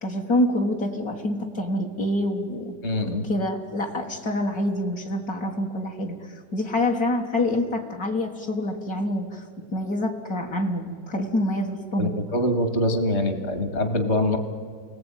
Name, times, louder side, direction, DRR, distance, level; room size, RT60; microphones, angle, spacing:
voice 1, 0.0-2.8 3.0-12.2, left 1 dB, 55° left, -1 dB, 2.1 m, -26 dB
voice 2, 2.8-3.2 12.0-14.4, left 1 dB, 40° left, 7 dB, 2.3 m, -24 dB
29.0 x 20.5 x 9.1 m, 2.1 s
omnidirectional pair, 1.9 m